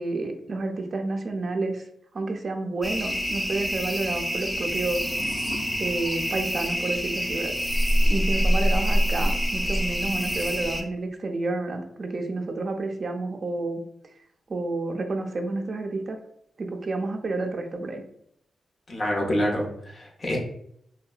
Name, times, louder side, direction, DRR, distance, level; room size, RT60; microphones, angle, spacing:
voice 1, 0.0-1.8 2.1-5.1 5.8-7.5 8.0-13.8 14.5-16.2 16.6-18.0, right 2 dB, 50° right, 4 dB, 0.4 m, -30 dB
sound 1, 2.8-10.8, equal, 5° left, 0.5 m, -26 dB
sound 2, 4.4-7.4, left 1 dB, 75° left, 0.7 m, -42 dB
voice 2, 18.9-20.4, equal, 45° left, -1 dB, 0.8 m, -27 dB
2.6 x 2.2 x 2.3 m, 0.71 s
cardioid pair, 65°, 0 cm